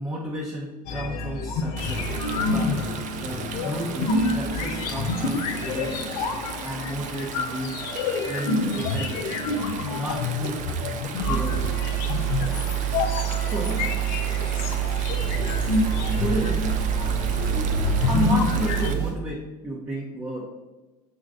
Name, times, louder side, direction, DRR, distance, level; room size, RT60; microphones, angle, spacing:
voice 1, 0.0-2.1 2.4-6.1 6.6-7.8 8.3-9.3 9.9-10.6 11.1-11.6 13.4-13.8 16.2-16.7 18.1-20.4, right 1 dB, 15° right, -3 dB, 0.9 m, -32 dB
sound 1, 0.9-18.9, left 3 dB, 65° left, 0.6 m, -28 dB
Stream, 1.8-18.9, right 6 dB, 40° right, 0.5 m, -37 dB
sound 2, 11.2-19.1, right 12 dB, 55° right, 1.5 m, -27 dB
6.6 x 3.1 x 2.5 m, 1.2 s
hypercardioid pair, 85°, 21 cm